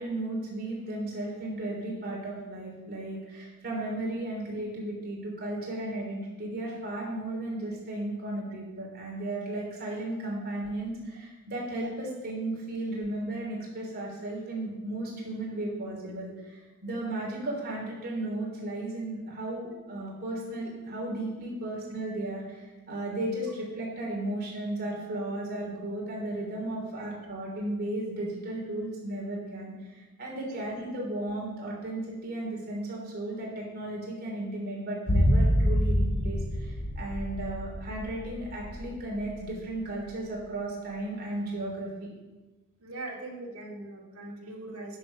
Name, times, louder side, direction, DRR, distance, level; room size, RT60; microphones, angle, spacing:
voice 1, 0.0-42.1, right 1 dB, 45° right, -3 dB, 3.3 m, -35 dB
sound 1, 35.1-39.3 39.6-39.7, equal, 60° left, 1.3 m, -26 dB
voice 2, 42.8-45.0, right 2 dB, 70° right, -3 dB, 2.3 m, -41 dB
10.0 x 7.0 x 5.4 m, 1.2 s
head